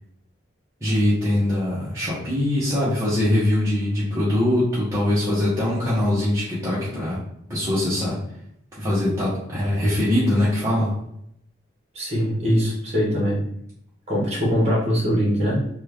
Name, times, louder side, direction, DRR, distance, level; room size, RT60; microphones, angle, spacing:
voice 1, 0.8-7.2 7.5-8.2 8.8-10.9, left 1 dB, 15° right, -10 dB, 0.8 m, -22 dB
voice 2, 11.9-13.4 14.1-15.7, equal, 30° right, -5 dB, 1.1 m, -22 dB
3.2 x 2.3 x 3.2 m, 0.73 s
head